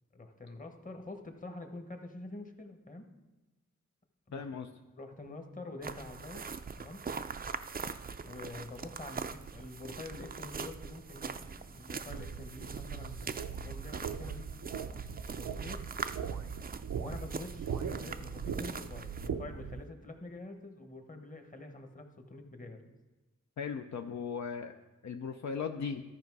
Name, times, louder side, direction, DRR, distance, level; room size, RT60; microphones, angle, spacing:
voice 1, 0.1-3.1 4.3-4.5 5.0-7.0 8.2-14.5 15.3-15.8 17.0-23.0, left 2 dB, 25° left, 5 dB, 1.1 m, -46 dB
voice 2, 4.3-4.7 23.6-24.7 25.0-26.0, left 6 dB, 65° left, 5 dB, 0.5 m, -37 dB
sound 1, 5.8-19.3, right 5 dB, 30° right, 0.4 m, -42 dB
sound 2, 12.1-19.8, right 6 dB, 85° right, 0.6 m, -40 dB
13.5 x 5.3 x 4.7 m, 1.1 s
wide cardioid pair, 85°, 30 cm